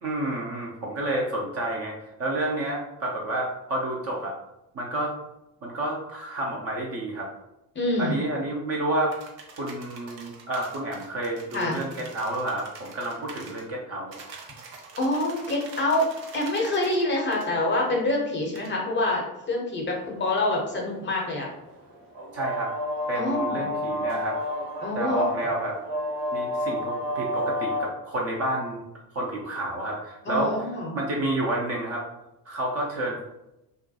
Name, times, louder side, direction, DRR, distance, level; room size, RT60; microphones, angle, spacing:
voice 1, 0.0-4.4 4.7-5.1 5.6-7.3 8.0-9.2 9.6-14.2 22.3-22.7 23.1-24.4 24.9-25.8 26.3-28.9 29.1-30.5 30.9-32.0 32.5-33.2, right 1 dB, 30° right, -2 dB, 0.5 m, -30 dB
voice 2, 7.7-8.2 11.5-11.8 15.0-16.1 16.3-21.5 23.1-23.6 24.8-25.3 30.3-31.0, left 2 dB, 25° left, -1 dB, 0.7 m, -26 dB
sound 1, 9.1-13.6 14.1-17.0 17.3-17.5 18.5-18.7, right 4 dB, 80° right, 0.6 m, -45 dB
sound 2, 20.0-27.9, left 1 dB, 55° right, 1.2 m, -30 dB
2.4 x 2.1 x 2.7 m, 0.89 s
figure-of-eight pair, 60°, 50 cm